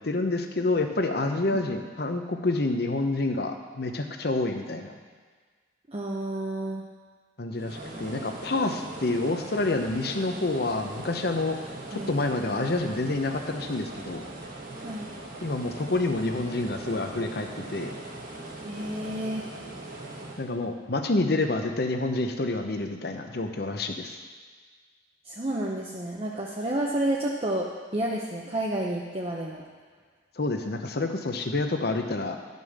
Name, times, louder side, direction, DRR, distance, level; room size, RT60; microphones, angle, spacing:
voice 1, 0.0-4.9 7.4-11.6 11.9-14.2 15.4-17.9 20.4-24.2 30.4-32.4, left 2 dB, 55° left, 5 dB, 0.8 m, -28 dB
voice 2, 5.9-6.8 11.9-12.1 14.8-15.1 18.6-19.5 25.2-27.7 27.9-29.6, right 1 dB, 30° right, -3 dB, 0.7 m, -30 dB
sound 1, 7.5-20.5, right 2 dB, 45° right, 1.3 m, -40 dB
11.5 x 5.4 x 6.5 m, 1.5 s
head